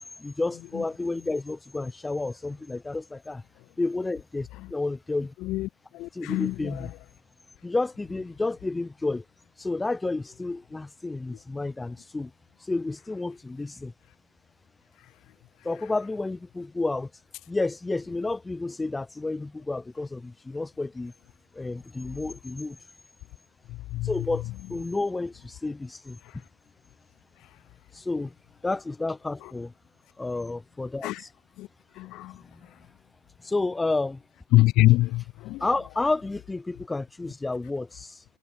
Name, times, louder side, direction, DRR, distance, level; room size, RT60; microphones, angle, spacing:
voice 1, 0.2-3.4 3.8-5.3 6.1-6.9 7.6-9.2 9.6-12.3 12.6-13.9 15.6-17.1 17.5-21.1 21.5-22.8 24.0-24.4 24.7-26.2 27.9-28.3 28.6-29.7 30.2-31.3 32.4-32.7 33.4-34.2 35.6-38.2, left 3 dB, 10° left, 0.9 m, -30 dB
voice 2, 6.0-6.5 23.9-24.1 31.0-31.2 31.6-31.7 32.0-32.3 34.5-35.6, left 17 dB, 35° left, 0.4 m, -23 dB
figure-of-eight pair, 90°, 0 cm